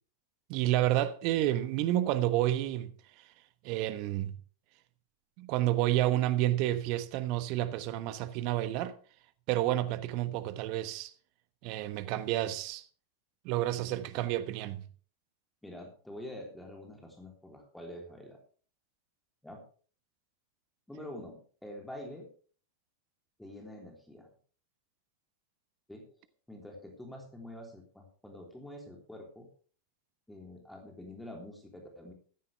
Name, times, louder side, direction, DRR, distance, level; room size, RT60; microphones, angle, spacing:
voice 1, 0.5-2.9 3.2-3.3 3.6-4.3 5.4-9.0 9.5-11.1 11.6-12.8 13.4-14.8, right 14 dB, 45° right, 1.2 m, -30 dB
voice 2, 15.6-18.4 19.4-19.6 20.9-22.3 23.4-24.3 25.9-26.1 26.5-29.5 30.3-32.1, left 1 dB, 5° left, 3.3 m, -46 dB
15.5 x 14.0 x 3.4 m
figure-of-eight pair, 90°, 0 cm